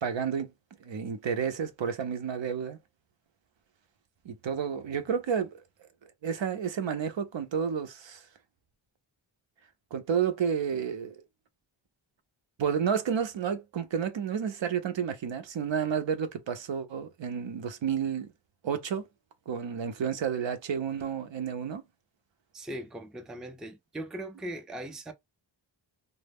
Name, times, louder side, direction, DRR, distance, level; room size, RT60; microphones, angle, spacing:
voice 1, 0.0-0.5 0.8-2.8 4.2-5.6 6.0-8.2 9.9-11.1 12.6-18.3 18.6-19.1 19.5-21.8, right 7 dB, 65° right, 0.6 m, -31 dB
voice 2, 22.5-25.1, right 1 dB, ahead, 0.4 m, -39 dB
2.0 x 2.0 x 3.4 m
cardioid pair, 50°, 49 cm